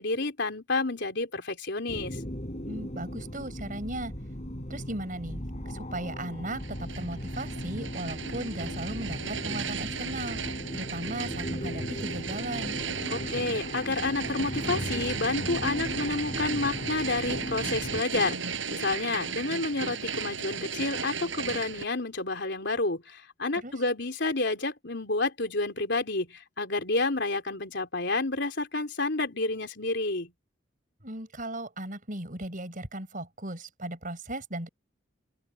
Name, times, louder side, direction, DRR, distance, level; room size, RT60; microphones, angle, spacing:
voice 1, 0.0-2.2 13.1-30.3, left 3 dB, 65° left, 4.0 m, -30 dB
sound 1, 1.9-18.0, equal, 35° left, 4.9 m, -37 dB
voice 2, 2.7-4.1 4.7-10.4 10.7-12.8 23.5-23.7 31.0-34.7, right 1 dB, 45° right, 5.2 m, -37 dB
sound 2, 6.6-21.8, right 6 dB, 75° right, 5.7 m, -35 dB
open air
head